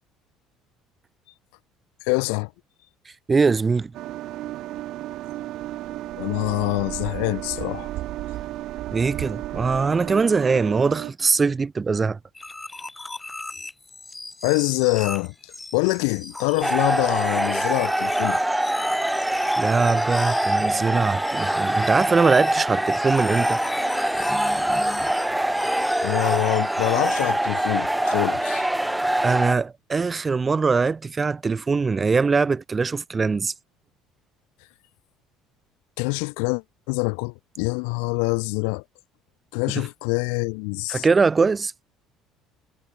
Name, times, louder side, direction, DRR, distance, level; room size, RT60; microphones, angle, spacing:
voice 1, 2.0-2.5 6.2-7.9 14.4-15.3 15.7-18.4 26.0-28.7 36.0-38.8 39.5-41.1, left 40 dB or more, 85° left, 0.5 m, -25 dB
voice 2, 3.3-3.9 8.9-12.2 19.6-23.6 29.2-33.5 40.9-41.7, right 4 dB, 25° right, 0.8 m, -22 dB
sound 1, 3.9-11.1, right 15 dB, 65° right, 2.3 m, -33 dB
sound 2, 12.3-27.2, left 2 dB, 15° left, 7.6 m, -36 dB
sound 3, 16.6-29.6, right 1 dB, 5° right, 1.5 m, -24 dB
supercardioid pair, 105°, 0 cm